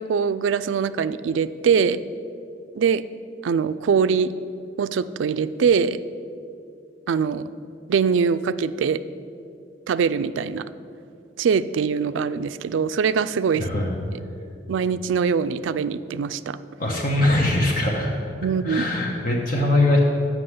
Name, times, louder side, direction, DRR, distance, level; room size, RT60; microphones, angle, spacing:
voice 1, 0.0-2.0 2.7-3.0 3.4-4.3 4.8-6.0 7.1-7.4 7.9-9.0 9.9-10.6 11.4-13.7 14.1-14.2 14.7-16.6 18.4-18.8, right 6 dB, 85° right, 14 dB, 0.3 m, -22 dB
voice 2, 13.5-13.9 16.8-18.1 18.6-20.0, left 2 dB, 50° left, -1 dB, 1.1 m, -21 dB
7.7 x 6.0 x 7.9 m, 2.5 s
head